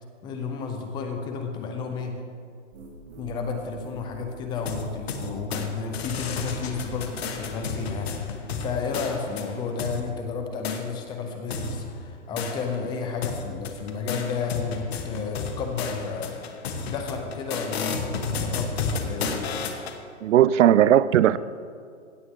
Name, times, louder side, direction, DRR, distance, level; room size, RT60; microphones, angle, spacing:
voice 1, 0.2-2.2 3.2-16.3 16.9-19.5, left 5 dB, 10° left, 0.5 m, -32 dB
sound 1, 2.7-8.2, right 1 dB, 35° right, 2.1 m, -44 dB
sound 2, 4.6-5.7 5.9-10.0 10.6-10.8 11.5-12.9 13.2-20.0, left 5 dB, 55° left, 1.2 m, -32 dB
voice 2, 20.2-21.4, right 11 dB, 75° right, 0.5 m, -17 dB
16.5 x 7.7 x 3.6 m
hypercardioid pair, 150°, 37 cm